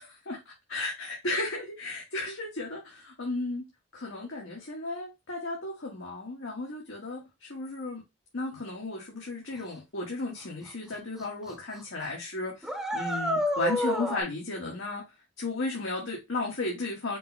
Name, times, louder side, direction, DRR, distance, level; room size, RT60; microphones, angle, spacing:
voice 1, 0.3-3.7 3.9-8.0 8.3-15.0 15.4-17.2, left 2 dB, 85° left, 1.4 m, -34 dB
sound 1, 10.7-10.8 11.2-11.5 11.8-11.9 12.6-14.2, equal, ahead, 0.7 m, -29 dB
5.3 x 2.2 x 4.0 m
head